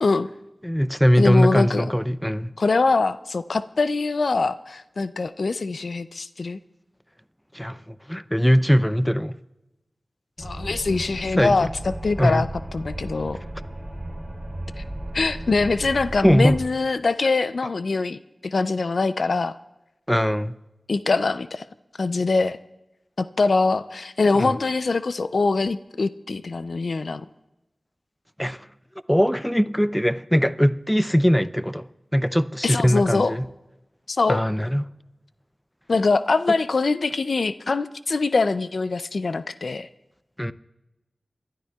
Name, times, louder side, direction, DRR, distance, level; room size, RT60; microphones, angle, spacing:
voice 1, 0.6-2.5 7.5-9.4 11.4-11.7 12.2-12.5 16.2-16.6 20.1-20.6 24.3-24.5 28.4-28.7 29.1-31.9 32.1-33.5 34.3-34.8 40.4-40.5, equal, 5° left, 0.5 m, -21 dB
voice 2, 1.2-1.8 2.6-6.6 10.4-12.5 12.7-13.4 14.8-14.9 15.1-19.6 20.9-21.6 22.0-22.6 23.2-27.2 32.6-33.3 34.1-34.4 35.9-39.9, left 3 dB, 80° left, 0.4 m, -23 dB
sound 1, 10.4-16.7, right 1 dB, 15° right, 2.9 m, -35 dB
26.5 x 12.0 x 2.3 m
cardioid pair, 45°, 0 cm